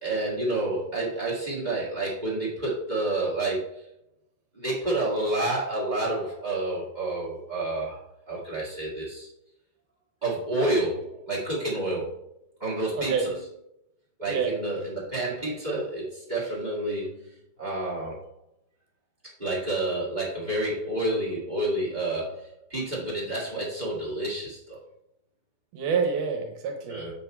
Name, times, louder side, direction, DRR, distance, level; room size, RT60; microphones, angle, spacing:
voice 1, 0.0-3.7 4.5-8.0 8.3-9.3 10.2-12.1 12.6-13.3 14.2-17.1 17.6-18.2 19.4-24.8 26.9-27.1, right 2 dB, 15° right, -5 dB, 1.6 m, -29 dB
voice 2, 12.9-13.3 14.3-14.5 25.7-27.1, right 5 dB, 75° right, 4 dB, 2.3 m, -27 dB
7.7 x 4.1 x 4.4 m, 0.80 s
omnidirectional pair, 3.8 m